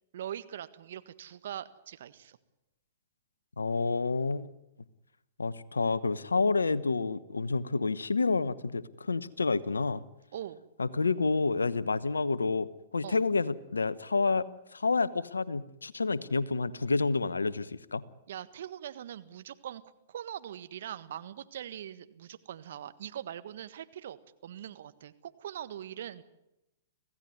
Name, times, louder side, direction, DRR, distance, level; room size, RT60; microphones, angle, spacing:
voice 1, 0.1-2.4 10.3-10.6 13.0-13.2 18.3-19.8 20.1-24.2 24.4-26.2, right 10 dB, 65° right, 12 dB, 1.5 m, -42 dB
voice 2, 3.6-4.5 5.4-10.0 10.8-12.7 12.9-18.0, left 4 dB, 90° left, 16 dB, 1.1 m, -29 dB
25.5 x 16.5 x 9.7 m, 0.91 s
hypercardioid pair, 115°, 0 cm